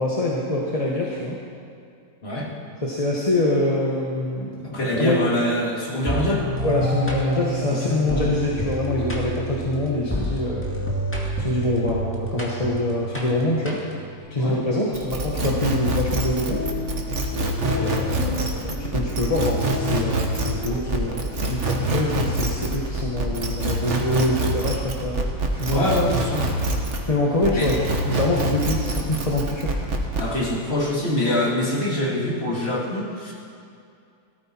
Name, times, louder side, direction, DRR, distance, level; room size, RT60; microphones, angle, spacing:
voice 1, 0.0-1.4 2.8-5.2 6.6-10.7 11.4-13.8 14.3-16.6 17.7-25.2 25.5-25.9 27.1-29.7, left 1 dB, 25° left, -4 dB, 1.3 m, -25 dB
voice 2, 4.6-6.5 7.7-8.0 14.4-14.6 17.7-17.9 25.7-26.4 27.6-27.7 30.2-33.3, left 1 dB, 40° left, -4 dB, 2.7 m, -24 dB
sound 1, 6.1-14.2, right 1 dB, 10° left, 2.1 m, -28 dB
sound 2, 14.1-21.7, left 4 dB, 65° left, 2.6 m, -34 dB
sound 3, 14.9-27.1 27.4-30.3, right 2 dB, 50° right, 1.6 m, -25 dB
17.5 x 13.5 x 4.4 m, 2.5 s
omnidirectional pair, 1.6 m